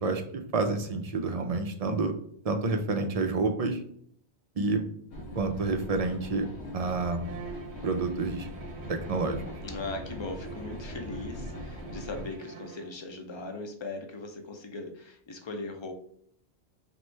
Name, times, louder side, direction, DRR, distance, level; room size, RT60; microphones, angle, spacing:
voice 1, 0.0-2.1 2.4-3.8 4.6-4.8 5.4-6.5 6.7-7.3 7.8-8.5 8.9-9.4, right 3 dB, 60° right, 5 dB, 0.4 m, -29 dB
sound 1, 5.1-12.2, left 1 dB, 75° left, 1.2 m, -41 dB
Bowed string instrument, 7.2-13.0, right 6 dB, 80° right, 0.9 m, -45 dB
voice 2, 9.6-15.9, left 3 dB, 35° left, 4 dB, 0.5 m, -39 dB
3.1 x 2.9 x 4.4 m, 0.64 s
omnidirectional pair, 1.1 m